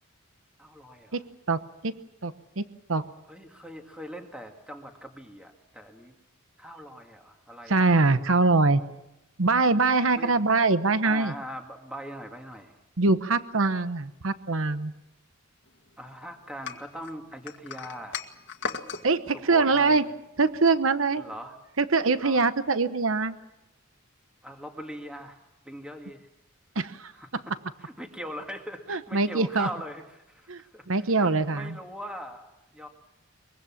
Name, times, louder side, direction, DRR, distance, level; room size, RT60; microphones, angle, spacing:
voice 1, 0.6-1.2 3.3-6.1 6.6-7.9 10.2-10.3 11.0-12.8 16.0-18.2 19.3-20.1 21.2-21.6 22.2-22.5 24.4-25.4 25.7-26.3 27.1-27.3 27.8-32.9, equal, 5° right, 3 dB, 2.0 m, -41 dB
voice 2, 1.1-1.9 2.2-2.6 2.9-3.0 7.7-8.8 9.4-11.3 13.0-14.9 19.0-20.0 20.4-21.2 21.8-23.4 26.8-27.1 28.9-29.7 30.5-30.6 30.9-31.8, right 3 dB, 70° right, 12 dB, 1.0 m, -23 dB
sound 1, 16.6-19.0, left 5 dB, 55° left, 1.8 m, -36 dB
23.5 x 23.0 x 7.3 m, 0.91 s
head